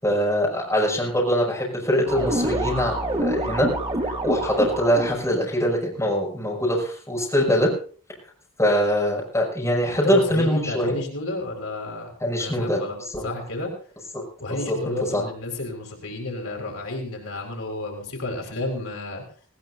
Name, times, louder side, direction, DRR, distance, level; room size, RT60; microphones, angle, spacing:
voice 1, 0.0-3.7 4.2-7.7 8.6-11.0 12.2-12.8 13.1-13.3 14.1-15.2, equal, 15° left, -3 dB, 6.0 m, -23 dB
sound 1, 2.1-5.2, right 1 dB, 25° right, 2.3 m, -26 dB
voice 2, 9.9-12.1 12.4-13.0 13.2-13.7 14.4-19.2, left 2 dB, 75° left, 1 dB, 4.6 m, -31 dB
19.5 x 18.5 x 2.7 m, 0.42 s
head